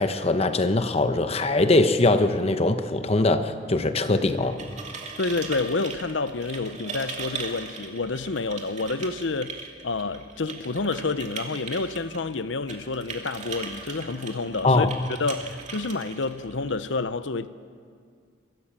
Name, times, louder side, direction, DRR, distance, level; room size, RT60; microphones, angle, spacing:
voice 1, 0.0-4.6 14.6-14.9, left 2 dB, 35° left, 1.0 m, -22 dB
sound 1, 4.3-16.9, right 4 dB, 40° right, 2.5 m, -39 dB
voice 2, 5.2-14.9 15.2-17.5, left 3 dB, 85° left, 0.8 m, -29 dB
24.0 x 16.0 x 7.5 m
head